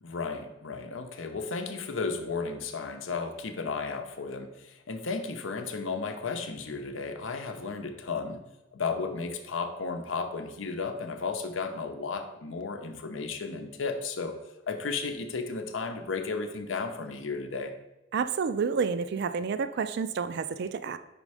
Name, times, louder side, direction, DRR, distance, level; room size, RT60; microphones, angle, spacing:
voice 1, 0.0-8.4 8.7-14.4 14.7-17.7, left 4 dB, 85° left, 6 dB, 0.7 m, -34 dB
voice 2, 18.1-21.0, right 5 dB, 60° right, 12 dB, 0.4 m, -29 dB
5.1 x 4.2 x 4.8 m, 0.99 s
head